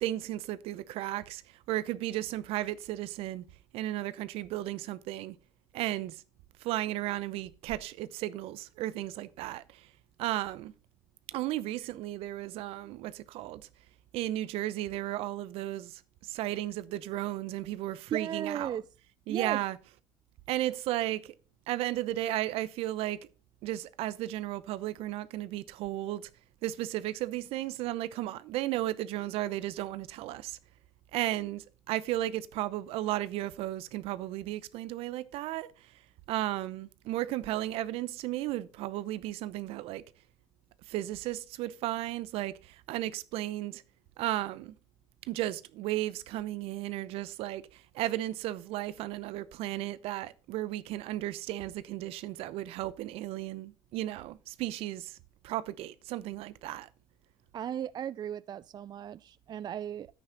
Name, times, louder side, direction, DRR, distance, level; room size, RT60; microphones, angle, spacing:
voice 1, 0.0-3.4 3.7-5.4 5.7-6.2 6.6-9.9 10.2-10.7 11.3-13.6 14.1-18.8 19.3-19.8 20.5-21.3 21.7-23.2 23.6-26.3 26.6-30.6 31.1-35.9 36.3-40.0 40.9-43.8 44.2-44.7 45.3-55.2 55.4-56.9, right 15 dB, 70° right, 0.7 m, -34 dB
voice 2, 18.1-18.9 19.3-19.6 57.5-60.1, right 9 dB, 45° right, 0.4 m, -36 dB
10.0 x 8.7 x 3.9 m
supercardioid pair, 80°, 10 cm